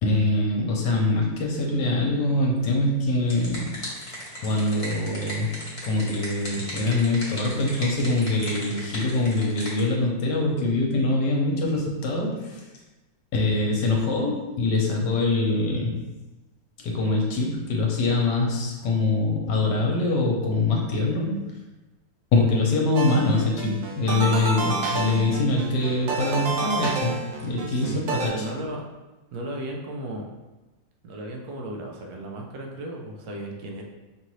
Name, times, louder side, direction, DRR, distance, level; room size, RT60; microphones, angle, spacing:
voice 1, 0.0-3.7 4.4-5.6 5.8-12.6 13.3-16.0 16.8-21.4 22.3-27.1 27.4-28.4, left 2 dB, 70° left, -1 dB, 1.4 m, -24 dB
sound 1, 3.0-9.8, equal, 20° left, 1.1 m, -37 dB
voice 2, 13.6-13.9 27.7-28.8 29.3-30.3 31.0-33.8, right 1 dB, 65° right, 0 dB, 1.1 m, -35 dB
sound 2, 23.0-28.3, right 3 dB, 85° right, 1.4 m, -29 dB
5.5 x 2.5 x 3.1 m, 1.1 s
omnidirectional pair, 2.0 m